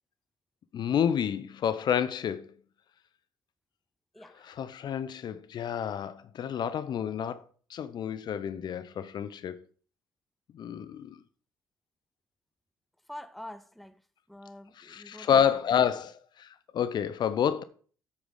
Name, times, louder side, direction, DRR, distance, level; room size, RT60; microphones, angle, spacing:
voice 1, 0.7-2.5 4.4-7.4 7.7-9.6 10.5-11.2 14.8-17.6, left 8 dB, 45° left, 0.7 m, -29 dB
voice 2, 4.1-4.5 13.1-14.0 14.3-15.7, left 1 dB, ahead, 0.7 m, -46 dB
8.3 x 8.1 x 3.8 m
figure-of-eight pair, 50°, 10 cm